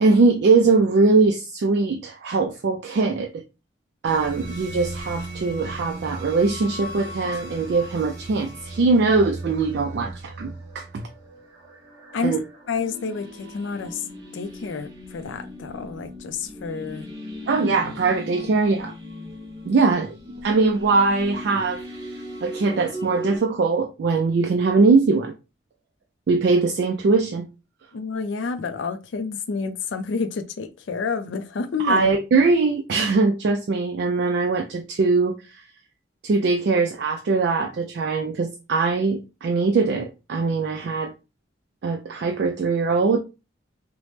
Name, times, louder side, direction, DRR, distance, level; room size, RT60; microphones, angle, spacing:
voice 1, 0.0-3.4 4.0-11.0 12.2-12.4 17.5-18.9 19.7-20.2 20.4-21.8 22.4-25.3 26.3-27.4 31.8-35.6 36.2-41.1 41.8-43.2, right 4 dB, 60° right, 0.3 m, -21 dB
sound 1, 4.0-23.4, equal, 20° right, 0.9 m, -37 dB
voice 2, 12.7-14.0 14.3-17.1 27.9-32.1, left 4 dB, 80° left, 0.4 m, -29 dB
3.0 x 2.0 x 3.1 m
head